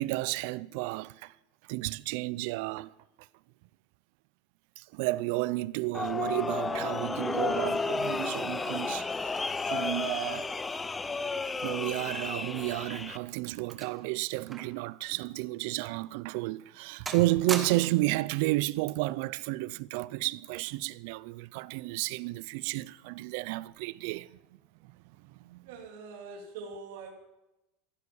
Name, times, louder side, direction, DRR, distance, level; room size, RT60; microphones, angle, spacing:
voice 1, 0.0-1.3 1.7-2.9 4.8-9.4 9.7-10.5 11.6-24.4 24.8-25.0 25.4-25.7, right 19 dB, 60° right, 0.4 m, -32 dB
sound 1, 5.9-13.2, left 4 dB, 10° left, 0.5 m, -32 dB
sound 2, 13.2-14.9 15.2-15.3 16.0-16.1 16.5-16.8 17.1-18.1 19.1-19.4, right 4 dB, 15° right, 1.3 m, -40 dB
voice 2, 25.6-27.1, right 4 dB, 75° right, 2.7 m, -43 dB
15.0 x 11.0 x 6.9 m
supercardioid pair, 160°, 0 cm